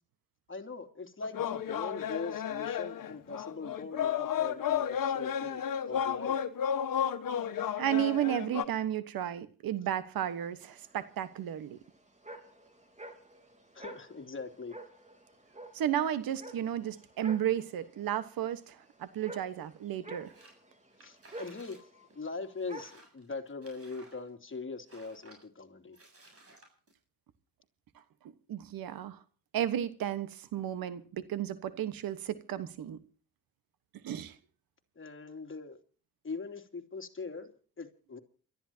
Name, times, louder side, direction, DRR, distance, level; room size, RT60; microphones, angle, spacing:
voice 1, 0.5-6.4 13.7-14.8 21.0-26.0 34.9-35.8 36.2-38.2, left 4 dB, 35° left, 2.9 m, -41 dB
sound 1, 1.2-8.6, left 8 dB, 70° left, 1.5 m, -32 dB
voice 2, 7.8-11.8 15.7-20.3 28.5-29.2 29.5-33.0 34.0-34.3, right 11 dB, 80° right, 1.3 m, -33 dB
sound 2, 10.1-23.0, right 1 dB, 20° right, 3.4 m, -51 dB
sound 3, 20.2-20.6 20.9-21.8 22.1-22.2 22.6-24.5 24.9-25.4 25.9-26.9, right 2 dB, 40° right, 7.7 m, -57 dB
29.0 x 13.5 x 2.8 m
cardioid pair, 70°, 34 cm